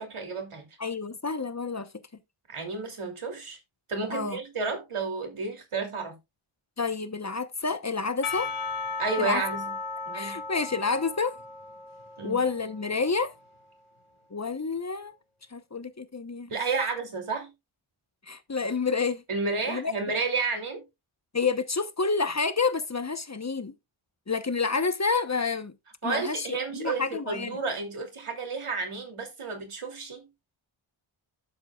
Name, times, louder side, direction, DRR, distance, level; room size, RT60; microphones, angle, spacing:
voice 1, 0.0-0.7 2.5-3.6 3.9-6.2 9.0-9.7 10.1-10.4 12.2-12.4 16.5-17.5 19.3-20.8 26.0-30.3, right 4 dB, 85° right, 2.9 m, -31 dB
voice 2, 0.8-1.9 4.1-4.4 6.8-8.5 9.2-9.4 10.1-11.3 12.2-13.3 14.3-15.1 15.5-16.5 18.3-19.2 19.7-19.9 21.3-23.7 24.3-25.7 26.0-27.6, left 4 dB, 35° left, 1.0 m, -29 dB
Percussion / Church bell, 8.2-13.5, left 4 dB, 80° left, 1.9 m, -36 dB
12.0 x 7.4 x 2.3 m
wide cardioid pair, 65°, 49 cm